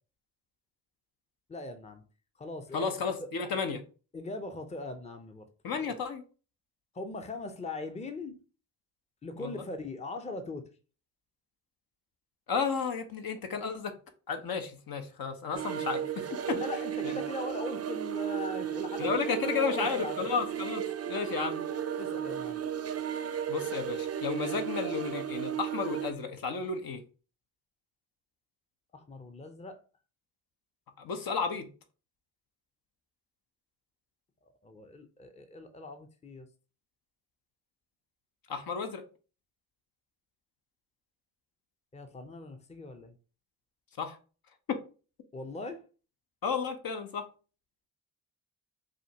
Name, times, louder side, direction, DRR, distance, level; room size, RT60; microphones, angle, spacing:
voice 1, 1.5-2.0 2.4-2.9 4.1-5.4 5.8-5.9 6.9-8.4 9.2-10.7 16.5-20.3 22.0-22.6 28.9-29.8 34.4-36.5 41.9-43.2 45.3-45.8, left 2 dB, 15° left, 0.6 m, -40 dB
voice 2, 2.7-3.8 5.6-6.2 9.4-9.6 12.5-13.9 14.3-16.6 17.0-17.1 19.0-21.6 23.5-27.0 31.0-31.7 38.5-39.0 44.0-44.2 46.4-47.3, left 5 dB, 55° left, 0.8 m, -33 dB
sound 1, 15.5-26.1, right 9 dB, 35° right, 0.6 m, -34 dB
5.0 x 2.4 x 2.8 m
supercardioid pair, 45°, 42 cm